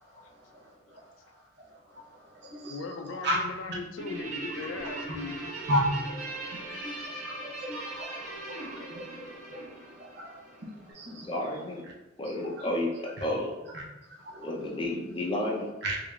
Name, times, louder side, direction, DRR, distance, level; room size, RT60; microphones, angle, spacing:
voice 1, 0.0-1.1 1.7-2.8 3.2-3.4 3.7-3.8 5.1-5.2 5.7-11.3 12.2-12.7 13.7-13.8 14.2-14.5 15.8-16.0, equal, 60° right, -2 dB, 0.7 m, -35 dB
voice 2, 0.6-1.0 2.6-5.4 7.1-7.2, left 4 dB, 80° left, 6 dB, 0.4 m, -39 dB
Guitar, 4.0-10.7, right 2 dB, 40° right, 1.3 m, -40 dB
voice 3, 11.1-11.8 12.2-13.5 14.4-15.7, left 1 dB, 25° left, -1 dB, 0.5 m, -31 dB
3.7 x 3.1 x 2.3 m, 1.1 s
head